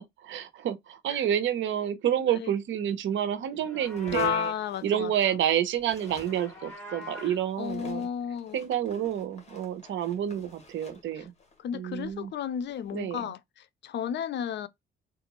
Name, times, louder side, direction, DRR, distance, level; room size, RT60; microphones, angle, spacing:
voice 1, 0.0-4.5 4.8-8.1 8.5-11.3 11.7-12.3 12.9-13.2, right 10 dB, 75° right, 0.8 m, -29 dB
voice 2, 2.2-2.5 4.1-5.3 7.2-8.6 11.2-11.3 11.6-14.7, left 9 dB, 60° left, 0.5 m, -33 dB
Livestock farm animals working animals, 3.5-4.6 5.9-7.4, left 1 dB, 5° left, 2.5 m, -44 dB
sound 1, 3.9-5.5 5.8-13.0, left 3 dB, 35° left, 1.6 m, -51 dB
3.8 x 2.5 x 2.9 m
cardioid pair, 90°, 20 cm